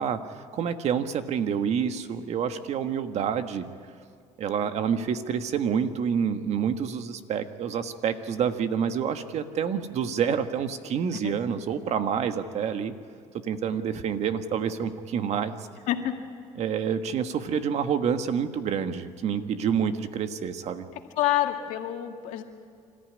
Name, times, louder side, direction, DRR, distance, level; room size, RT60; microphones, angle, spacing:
voice 1, 0.0-3.6 4.4-12.9 13.4-15.6 16.6-20.8, right 7 dB, 60° right, 8 dB, 1.4 m, -28 dB
voice 2, 15.9-16.2 21.2-22.4, left 13 dB, 80° left, 4 dB, 2.1 m, -27 dB
26.0 x 14.0 x 9.8 m, 2.2 s
cardioid pair, 100°, 13 cm